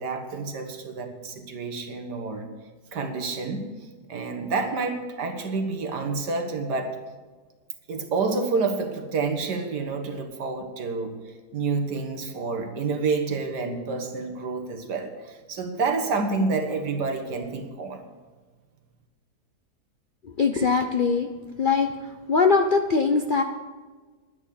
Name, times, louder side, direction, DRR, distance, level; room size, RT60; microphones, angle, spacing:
voice 1, 0.0-2.5 2.9-3.7 4.1-7.0 7.9-11.1 11.5-18.0, right 4 dB, 90° right, 5 dB, 2.1 m, -28 dB
voice 2, 20.4-21.3 21.6-21.9 22.3-23.4, left 4 dB, 60° left, 6 dB, 0.5 m, -21 dB
11.0 x 9.9 x 6.6 m, 1.4 s
omnidirectional pair, 1.7 m